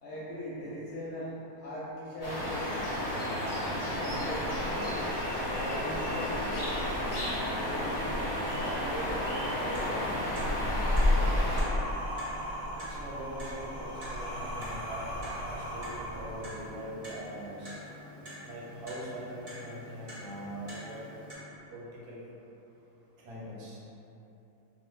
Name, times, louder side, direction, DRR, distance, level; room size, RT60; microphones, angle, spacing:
voice 1, 0.0-3.2 3.7-5.1 5.4-6.7 7.4-8.0 8.5-10.3, equal, 65° left, -8 dB, 0.7 m, -40 dB
sound 1, 2.2-11.6, left 1 dB, 25° left, 0.4 m, -31 dB
sound 2, 3.9-16.9, equal, 55° right, 0.9 m, -40 dB
voice 2, 4.0-4.4 6.6-6.9 12.8-17.7 18.4-21.0 21.3-22.2 23.2-23.8, equal, 85° right, -5 dB, 1.1 m, -42 dB
Clock, 9.3-21.3, equal, 30° right, 0.5 m, -47 dB
2.4 x 2.4 x 3.1 m, 2.9 s
omnidirectional pair, 1.5 m